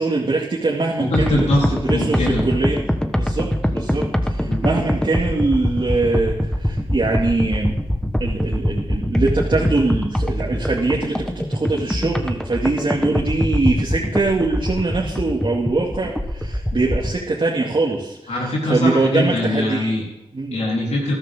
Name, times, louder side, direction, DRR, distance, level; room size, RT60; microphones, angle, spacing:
voice 1, 0.0-1.5 1.8-2.8 3.2-7.7 8.2-20.6, right 3 dB, 50° right, -3 dB, 2.3 m, -22 dB
voice 2, 1.0-2.4 4.4-4.6 18.3-20.0 20.5-21.1, left 1 dB, 90° left, -3 dB, 4.0 m, -22 dB
sound 1, 1.1-17.2, equal, 5° left, 1.3 m, -23 dB
14.0 x 12.5 x 3.7 m, 0.93 s
cardioid pair, 55°, 11 cm